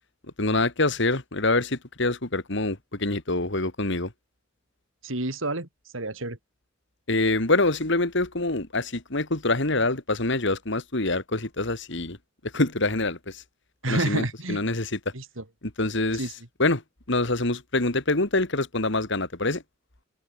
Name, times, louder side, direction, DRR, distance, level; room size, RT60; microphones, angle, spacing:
voice 1, 0.4-4.1 7.1-12.2 12.5-13.4 13.9-14.9 15.8-16.2 16.6-16.8 17.1-19.6, left 2 dB, 60° left, 2.6 m, -25 dB
voice 2, 5.0-5.7 5.9-6.4 13.8-14.6 15.1-15.4 16.1-16.3, right 2 dB, 75° right, 3.6 m, -29 dB
open air
head